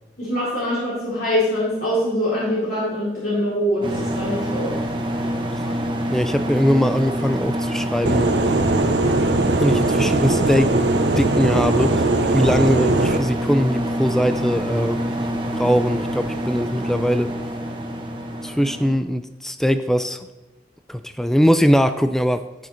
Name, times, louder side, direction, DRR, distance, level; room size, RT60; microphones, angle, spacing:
voice 1, 0.2-4.8, equal, 55° left, -10 dB, 4.6 m, -23 dB
sound 1, 3.8-19.0, equal, 30° right, 1.3 m, -26 dB
voice 2, 6.1-8.3 9.6-10.7 11.2-15.0 15.5-17.3 18.4-20.3 20.9-22.4, equal, ahead, 10 dB, 0.4 m, -21 dB
sound 2, 8.1-13.2, right 2 dB, 80° right, 0.8 m, -20 dB
17.5 x 6.2 x 4.3 m, 1.0 s
head